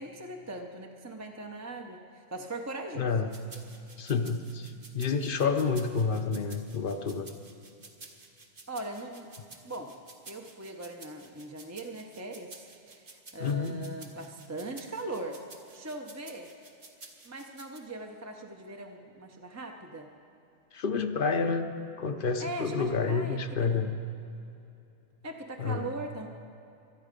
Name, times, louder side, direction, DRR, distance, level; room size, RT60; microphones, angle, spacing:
voice 1, 0.0-3.1 8.7-9.3 9.6-9.9 10.3-15.4 15.7-16.5 17.2-20.1 22.4-23.4 25.2-26.3, right 2 dB, 15° right, 2 dB, 0.7 m, -40 dB
voice 2, 2.9-3.4 4.0-7.3 13.4-13.8 20.7-21.7 22.0-24.0 25.6-25.9, left 5 dB, 55° left, 7 dB, 0.9 m, -29 dB
sound 1, 3.3-17.8, right 3 dB, 50° right, 1.4 m, -52 dB
25.0 x 9.2 x 5.2 m, 2.8 s
omnidirectional pair, 1.1 m